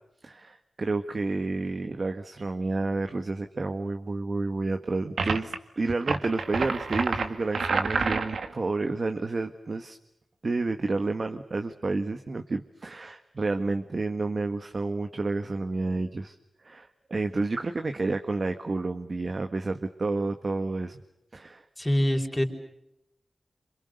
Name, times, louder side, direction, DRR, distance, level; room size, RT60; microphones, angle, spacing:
voice 1, 0.2-10.0 10.4-21.0 21.3-21.7, right 3 dB, 50° right, 6 dB, 1.7 m, -30 dB
sound 1, 5.2-5.6 6.0-8.5, right 4 dB, 85° right, 2.1 m, -28 dB
voice 2, 21.8-22.4, equal, 15° left, 3 dB, 5.1 m, -24 dB
29.0 x 27.0 x 6.7 m, 0.83 s
wide cardioid pair, 70°, 0 cm